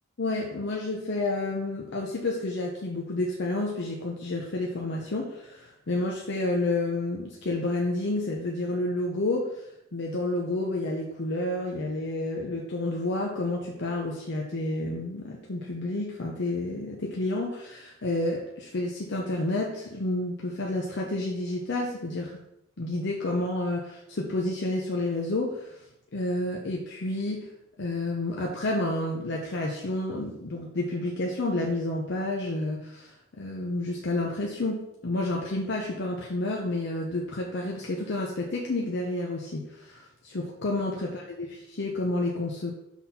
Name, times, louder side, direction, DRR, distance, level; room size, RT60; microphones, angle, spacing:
voice 1, 0.2-9.6 9.9-22.4 22.8-25.8 26.1-27.5 27.8-42.7, left 2 dB, 60° left, -1 dB, 0.7 m, -30 dB
5.9 x 4.0 x 4.2 m, 0.81 s
head